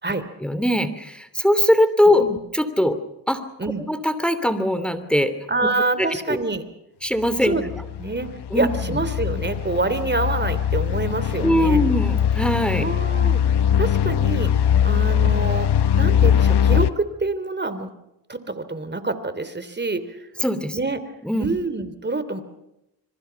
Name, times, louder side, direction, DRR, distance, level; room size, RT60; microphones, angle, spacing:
voice 1, 0.4-2.2 2.5-3.0 3.3-3.4 3.9-5.3 6.0-6.4 7.0-7.5 8.5-9.0 11.4-12.9 20.4-20.8 21.2-21.5, left 1 dB, ahead, 11 dB, 2.8 m, -21 dB
voice 2, 5.5-6.6 7.4-7.7 8.0-11.8 12.8-14.5 14.8-15.7 16.0-17.9 18.3-20.2 20.7-21.0 21.4-22.4, right 3 dB, 25° right, 12 dB, 3.0 m, -26 dB
sound 1, 7.2-16.9, left 9 dB, 60° left, 1.1 m, -21 dB
25.5 x 23.0 x 5.9 m, 0.89 s
cardioid pair, 60°, 44 cm